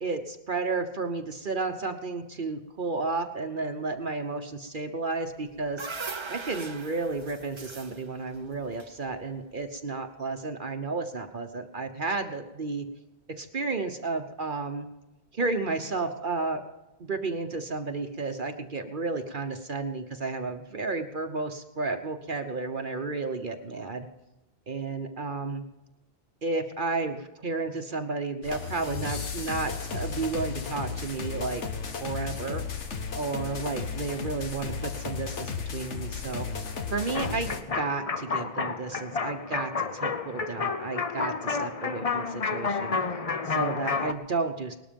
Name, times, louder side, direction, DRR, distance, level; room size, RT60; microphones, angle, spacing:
voice 1, 0.0-5.9 6.3-12.8 13.4-14.9 15.3-16.6 17.0-24.1 24.7-25.6 26.4-31.6 32.0-32.6 33.2-36.5 36.9-43.0 43.5-44.8, right 3 dB, 50° right, 6 dB, 1.1 m, -32 dB
sound 1, 5.3-9.6, right 4 dB, 30° right, 0.6 m, -40 dB
sound 2, 28.4-37.6, left 5 dB, 85° left, 1.6 m, -34 dB
sound 3, 37.1-44.1, left 5 dB, 35° left, 0.8 m, -30 dB
19.0 x 12.5 x 5.2 m, 1.0 s
omnidirectional pair, 1.2 m